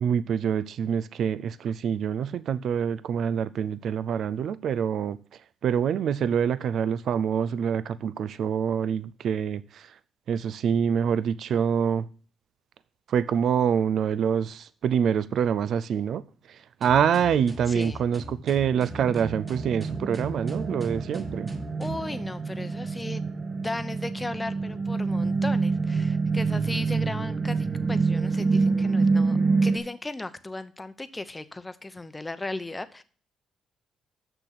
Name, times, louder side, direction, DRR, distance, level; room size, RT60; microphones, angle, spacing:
voice 1, 0.0-5.2 5.6-9.8 10.3-12.0 13.1-16.2 16.8-21.5, right 8 dB, 65° right, 16 dB, 0.4 m, -26 dB
sound 1, 16.8-22.1, equal, 20° right, 1.7 m, -41 dB
voice 2, 17.7-18.0 21.8-23.2 23.6-33.0, left 2 dB, 15° left, 12 dB, 0.8 m, -36 dB
sound 2, 18.9-29.8, right 4 dB, 40° right, 1.4 m, -27 dB
6.8 x 6.1 x 5.8 m, 0.42 s
cardioid pair, 90°, 0 cm